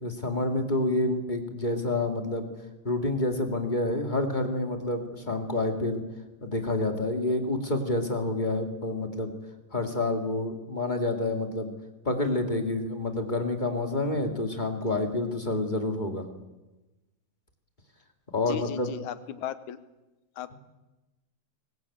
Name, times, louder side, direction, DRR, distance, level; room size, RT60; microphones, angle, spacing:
voice 1, 0.0-2.5 2.8-6.0 6.4-9.3 9.7-11.7 12.0-16.3 18.3-18.9, left 2 dB, 20° left, 4 dB, 1.6 m, -28 dB
voice 2, 18.5-19.8 20.4-20.5, left 10 dB, 70° left, 13 dB, 2.1 m, -36 dB
22.5 x 20.0 x 8.6 m, 1.1 s
omnidirectional pair, 4.0 m